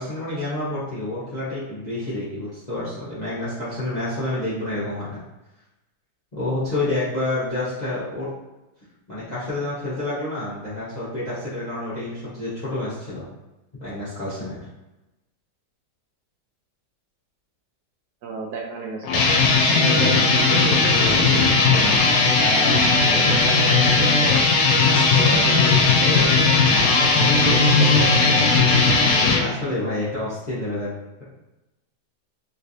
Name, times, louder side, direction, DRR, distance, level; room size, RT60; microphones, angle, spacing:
voice 1, 0.0-5.2 6.3-8.3 9.1-13.2 13.8-14.6 19.5-20.3 24.8-25.1 29.3-30.9, left 2 dB, 30° left, -11 dB, 0.9 m, -28 dB
voice 2, 18.2-19.2 19.7-21.9 22.4-24.4 24.9-26.3 27.0-28.6 29.3-29.6, right 4 dB, 75° right, -1 dB, 1.0 m, -31 dB
sound 1, 19.0-29.4, left 4 dB, 80° left, 1.2 m, -17 dB
3.2 x 3.1 x 2.6 m, 1.0 s
omnidirectional pair, 1.8 m